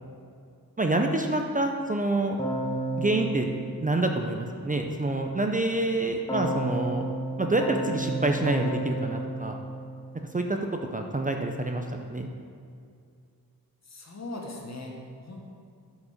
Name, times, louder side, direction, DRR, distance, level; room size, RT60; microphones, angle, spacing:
voice 1, 0.8-2.4 3.0-3.5 3.8-7.1 7.4-9.6 10.3-10.6 10.9-12.3, right 2 dB, 20° right, 3 dB, 0.5 m, -27 dB
Keyboard (musical), 2.4-4.7 6.3-10.6, right 1 dB, 10° left, 1.1 m, -32 dB
voice 2, 13.8-15.4, left 2 dB, 45° left, 0 dB, 1.4 m, -39 dB
12.0 x 5.1 x 5.0 m, 2.4 s
wide cardioid pair, 120°, 37 cm